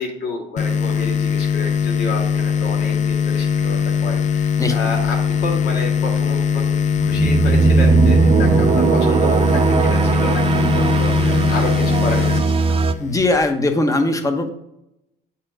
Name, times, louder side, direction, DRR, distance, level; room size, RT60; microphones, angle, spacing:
voice 1, 0.0-12.8, left 2 dB, 80° left, 0 dB, 2.0 m, -30 dB
sound 1, 0.6-13.5, left 7 dB, 45° left, 0.5 m, -21 dB
sound 2, 7.0-12.9, right 4 dB, 35° right, 0.5 m, -17 dB
voice 2, 13.0-14.5, left 2 dB, 20° left, 6 dB, 0.9 m, -19 dB
7.7 x 4.3 x 3.8 m, 0.87 s
cardioid pair, 110°, 17 cm